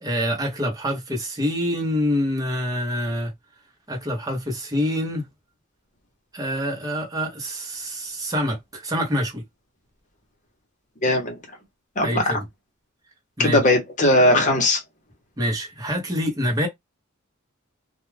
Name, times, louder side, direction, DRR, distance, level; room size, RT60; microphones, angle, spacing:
voice 1, 0.0-3.3 3.9-5.3 6.3-9.4 12.0-12.4 13.4-13.6 15.4-16.7, equal, 20° right, 0.8 m, -26 dB
voice 2, 11.0-11.3 12.0-12.2 13.4-14.8, left 1 dB, 35° left, 0.9 m, -18 dB
2.3 x 2.3 x 3.1 m
head